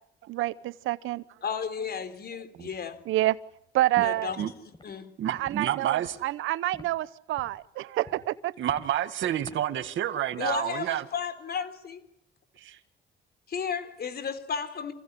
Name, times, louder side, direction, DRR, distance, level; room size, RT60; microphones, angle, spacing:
voice 1, 0.3-1.2 3.1-3.4 3.7-4.3 5.2-8.5, right 15 dB, 90° right, 18 dB, 0.9 m, -28 dB
voice 2, 1.4-3.0 4.0-4.5 4.8-5.1 10.4-12.0 13.5-14.9, left 6 dB, 50° left, 11 dB, 3.6 m, -33 dB
Walk footsteps, 4.7-4.9 5.4-5.6 6.0-6.2 6.7-6.9 7.3-7.6 8.0-8.2 8.6-8.9 9.4-9.6, left 2 dB, 25° left, 5.8 m, -46 dB
voice 3, 5.2-6.2 8.6-11.1 12.6-12.8, right 11 dB, 75° right, 11 dB, 1.9 m, -29 dB
27.5 x 16.0 x 10.0 m, 0.76 s
cardioid pair, 90°, 20 cm